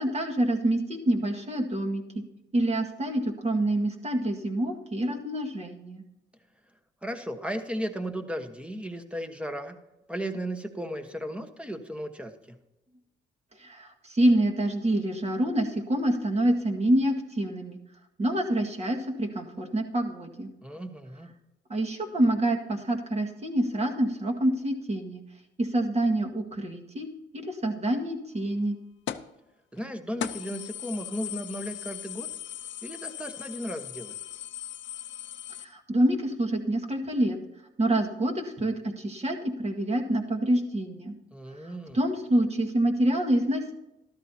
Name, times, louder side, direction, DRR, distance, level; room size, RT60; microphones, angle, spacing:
voice 1, 0.0-2.0 2.5-6.0 13.6-17.8 18.2-20.5 21.7-25.2 25.6-27.1 27.3-28.8 35.6-37.4 37.8-41.1 41.6-43.7, right 1 dB, 30° right, 2 dB, 1.9 m, -27 dB
voice 2, 7.0-9.7 10.1-12.6 20.6-21.3 29.7-32.3 32.8-34.1 41.3-42.0, equal, 5° right, 5 dB, 1.3 m, -35 dB
sound 1, 29.1-29.4 29.8-29.9 30.2-35.6, left 12 dB, 70° left, 0.7 m, -38 dB
13.0 x 12.5 x 2.9 m, 0.96 s
cardioid pair, 90°, 20 cm